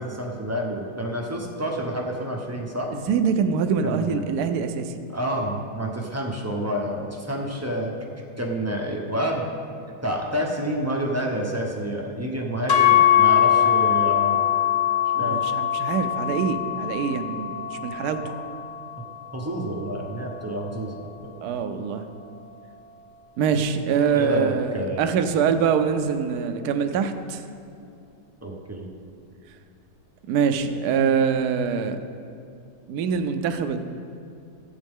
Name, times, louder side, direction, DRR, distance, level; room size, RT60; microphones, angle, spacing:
voice 1, 0.0-2.9 3.8-4.2 5.1-7.9 8.4-9.5 10.0-14.5 15.2-15.4 18.2-18.3 19.3-20.9 21.2-21.3 24.1-25.1 28.4-28.9, equal, 15° right, 0 dB, 0.5 m, -28 dB
voice 2, 2.9-4.9 15.1-18.2 21.4-22.0 23.4-27.4 30.3-32.0 32.9-33.8, right 6 dB, 70° right, 8 dB, 1.1 m, -24 dB
sound 1, 12.7-20.9, left 10 dB, 55° left, 1.3 m, -23 dB
15.0 x 8.1 x 3.6 m, 2.5 s
omnidirectional pair, 1.8 m